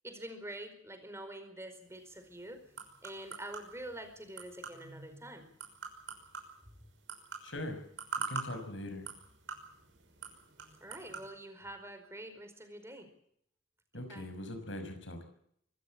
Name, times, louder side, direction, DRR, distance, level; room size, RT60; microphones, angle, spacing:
voice 1, 0.0-2.6 3.0-5.5 10.8-13.1 14.0-14.3, right 1 dB, 15° right, 7 dB, 4.8 m, -46 dB
sound 1, 1.9-11.3, right 5 dB, 70° right, 6.0 m, -45 dB
voice 2, 7.4-7.8 8.3-9.1 13.9-15.2, left 1 dB, 75° left, 7 dB, 5.9 m, -41 dB
25.0 x 14.5 x 8.8 m, 0.69 s
head